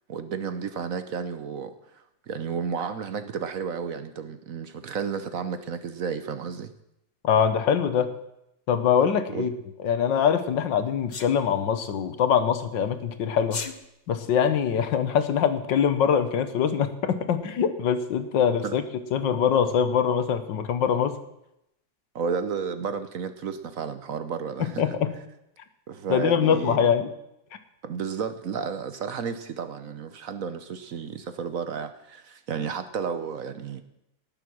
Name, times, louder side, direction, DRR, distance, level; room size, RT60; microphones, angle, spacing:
voice 1, 0.1-6.7 9.3-9.5 18.6-18.7 22.1-24.9 25.9-26.9 27.8-33.8, right 6 dB, 55° right, 10 dB, 1.0 m, -32 dB
voice 2, 7.2-8.1 8.7-9.5 9.8-13.6 14.1-18.8 19.1-21.2 24.8-25.1 26.1-27.1, left 7 dB, 70° left, 10 dB, 1.7 m, -23 dB
Sneeze, 11.1-11.3 13.4-13.7, left 5 dB, 50° left, 0.5 m, -33 dB
19.0 x 7.6 x 6.3 m, 0.82 s
omnidirectional pair, 2.1 m